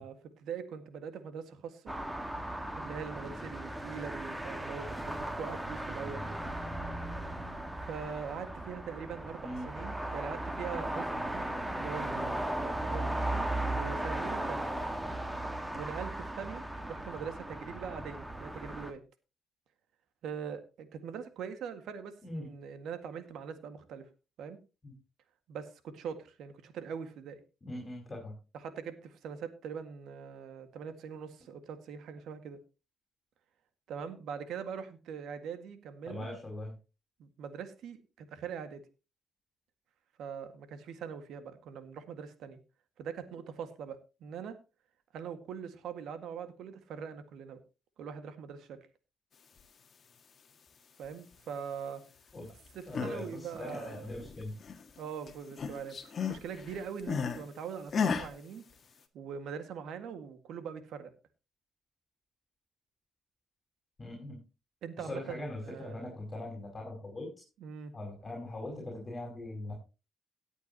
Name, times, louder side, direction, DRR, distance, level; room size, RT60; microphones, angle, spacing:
voice 1, 0.0-1.9 2.7-6.4 7.8-14.7 15.7-19.0 20.2-24.0 24.4-24.6 25.5-27.4 28.6-32.6 33.9-36.4 37.2-38.8 40.2-42.6 43.0-44.5 45.1-47.6 48.0-48.8 51.0-52.0 52.7-54.2 55.0-58.6 59.1-61.1 64.8-66.1 67.6-67.9, right 7 dB, 80° right, 10 dB, 1.8 m, -42 dB
sound 1, 1.9-18.9, right 1 dB, 10° right, 1.7 m, -37 dB
voice 2, 27.6-28.4 36.1-36.7 52.3-52.6 52.8-54.6 64.0-64.4 65.0-67.3 67.9-69.8, left 1 dB, 25° left, -2 dB, 5.1 m, -41 dB
sound 2, 52.7-53.2 53.6-55.0 55.3-57.4 57.9-58.3, left 6 dB, 45° left, 1.7 m, -34 dB
18.0 x 8.4 x 2.9 m, 0.30 s
cardioid pair, 90°, 0 cm